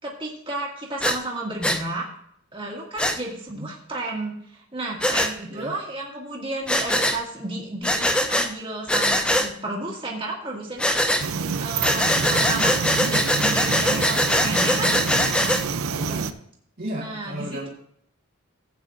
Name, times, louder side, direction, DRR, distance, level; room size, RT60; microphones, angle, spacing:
voice 1, 0.0-2.1 2.5-11.0 11.6-14.9 16.9-17.7, right 2 dB, 25° right, -3 dB, 2.0 m, -32 dB
Breathing, 1.0-1.2 1.6-1.8 3.0-3.2 5.0-5.3 6.7-7.2 7.8-8.5 8.9-9.5 10.8-11.2 11.8-15.6, equal, 5° left, 0.5 m, -22 dB
sound 1, 11.2-16.3, right 5 dB, 85° right, 0.6 m, -27 dB
voice 2, 15.8-16.4 16.8-17.7, right 1 dB, 45° right, -3 dB, 1.8 m, -34 dB
15.5 x 8.8 x 2.6 m, 0.68 s
head